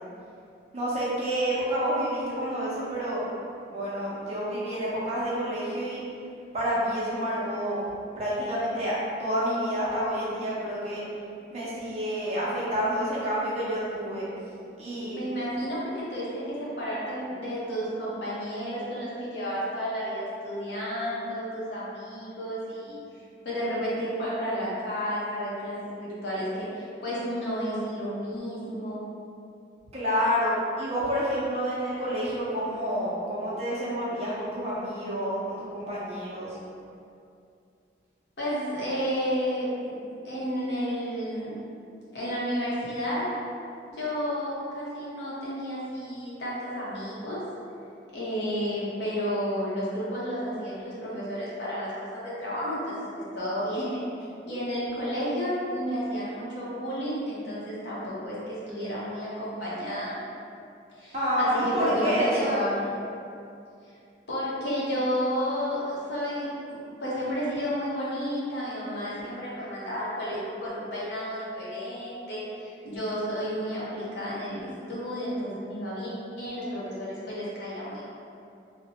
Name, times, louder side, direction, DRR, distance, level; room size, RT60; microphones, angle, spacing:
voice 1, 0.7-3.2 3.7-6.0 6.5-7.9 8.2-11.0 11.5-14.3 14.8-15.2 29.9-36.5 61.1-62.6, equal, 35° right, -8 dB, 0.6 m, -28 dB
voice 2, 15.1-23.0 23.4-29.1 38.4-41.6 42.1-43.3 43.9-47.4 48.1-53.1 53.3-54.0 54.4-60.2 61.0-62.9 64.3-78.0, equal, 70° left, -8 dB, 0.8 m, -31 dB
2.8 x 2.1 x 2.8 m, 2.5 s
head